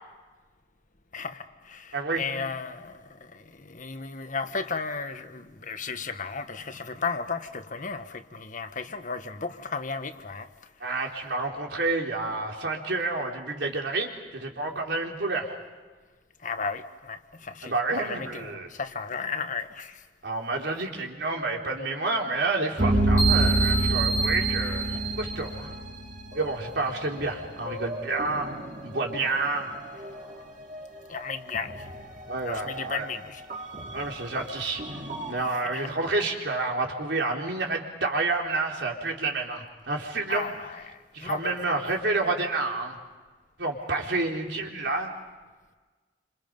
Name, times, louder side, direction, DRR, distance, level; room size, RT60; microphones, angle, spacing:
voice 1, 1.1-10.5 16.4-20.0 29.3-29.5 30.1-30.2 31.1-31.9 32.4-33.4 35.3-35.9 40.3-41.7, left 5 dB, 50° left, 1.4 m, -35 dB
voice 2, 1.9-2.2 10.8-15.6 17.6-18.7 20.2-25.7 26.4-28.5 28.8-29.7 32.3-33.1 33.9-34.8 35.3-40.5 41.1-43.0 43.6-45.1, right 3 dB, 85° right, 3.8 m, -29 dB
sound 1, 22.8-26.8 27.1-30.4 30.7-30.9 31.3-32.3 32.7-32.8 33.5-35.3, right 2 dB, 50° right, 3.2 m, -28 dB
28.5 x 26.5 x 5.4 m
head